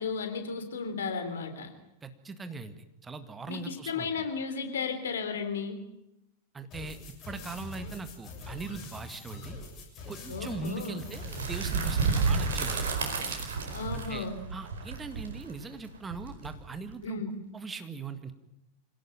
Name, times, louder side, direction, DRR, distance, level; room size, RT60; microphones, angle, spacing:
voice 1, 0.0-1.7 3.5-5.8 10.3-11.0 13.7-14.4 17.0-17.4, left 5 dB, 65° left, 8 dB, 3.6 m, -34 dB
voice 2, 2.0-4.1 6.5-7.0 7.3-9.6 10.1-12.9 13.9-17.2 17.5-18.3, right 4 dB, 15° right, 9 dB, 1.9 m, -40 dB
sound 1, 6.7-12.2, left 3 dB, 35° left, 7.0 m, -44 dB
sound 2, 11.1-16.9, right 4 dB, 65° right, 4.8 m, -31 dB
26.0 x 17.5 x 9.2 m, 0.90 s
figure-of-eight pair, 90°, 0 cm